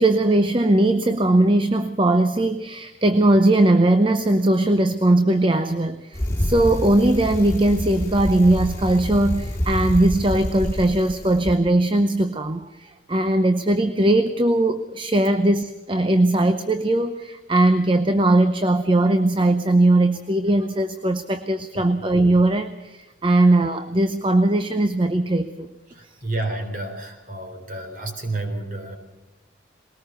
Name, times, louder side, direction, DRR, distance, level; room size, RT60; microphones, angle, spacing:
voice 1, 0.0-25.7, right 1 dB, 25° right, 9 dB, 0.7 m, -19 dB
Bicycle, 6.1-11.6, left 1 dB, 15° left, 2.6 m, -27 dB
voice 2, 25.9-29.0, right 2 dB, 45° right, 4 dB, 3.9 m, -30 dB
21.0 x 18.5 x 6.9 m, 1.1 s
head